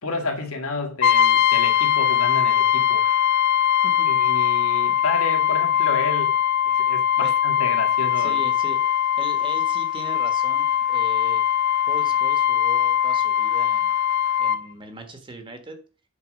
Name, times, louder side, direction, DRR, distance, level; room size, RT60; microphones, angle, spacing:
voice 1, 0.0-3.0 4.1-6.4 6.7-8.4, left 3 dB, 75° left, 1.8 m, -30 dB
Brass instrument, 1.0-14.6, left 10 dB, 50° left, 0.5 m, -21 dB
voice 2, 8.2-8.8 9.2-11.4 11.9-13.9 14.4-15.8, right 1 dB, 20° right, 1.3 m, -39 dB
8.3 x 4.3 x 6.4 m
head